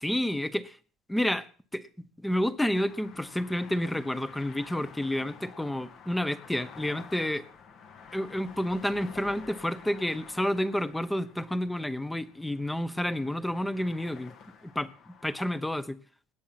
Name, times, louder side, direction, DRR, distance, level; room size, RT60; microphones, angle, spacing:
voice 1, 0.0-0.8 1.1-1.5 1.7-7.5 8.1-14.3 14.6-16.0, left 1 dB, 5° left, 15 dB, 1.0 m, -30 dB
sound 1, 2.7-15.6, left 6 dB, 60° left, 2.3 m, -50 dB
17.5 x 10.0 x 5.9 m, 0.43 s
cardioid pair, 120°, 0 cm